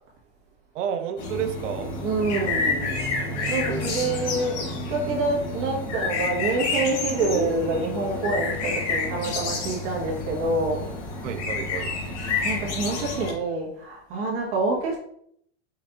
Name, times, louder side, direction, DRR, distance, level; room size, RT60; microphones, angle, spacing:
voice 1, 0.7-1.9 3.7-3.9 4.2-4.3 11.2-11.9, right 8 dB, 80° right, 9 dB, 0.6 m, -30 dB
sound 1, 1.2-13.3, left 3 dB, 70° left, 1.8 m, -29 dB
voice 2, 2.0-3.0 3.5-10.9 12.4-15.0, right 3 dB, 35° right, -3 dB, 1.6 m, -27 dB
Guitar, 7.2-10.7, left 1 dB, 20° left, 0.9 m, -36 dB
5.4 x 3.3 x 2.7 m, 0.67 s
supercardioid pair, 160°, 36 cm